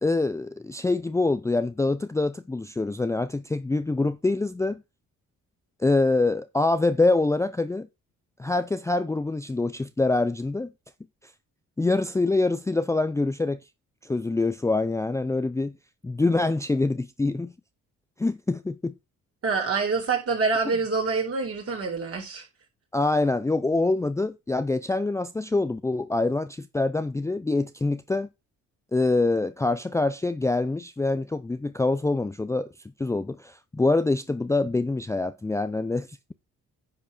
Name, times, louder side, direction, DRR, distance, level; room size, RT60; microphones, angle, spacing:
voice 1, 0.0-4.8 5.8-7.9 8.4-10.7 11.8-13.6 14.0-15.7 16.0-17.5 18.2-18.9 22.9-28.3 28.9-32.7 33.0-36.1, left 2 dB, 10° left, 0.4 m, -25 dB
voice 2, 19.4-22.5, right 4 dB, 50° right, 4.5 m, -26 dB
10.5 x 4.7 x 5.3 m
cardioid pair, 90°, 30 cm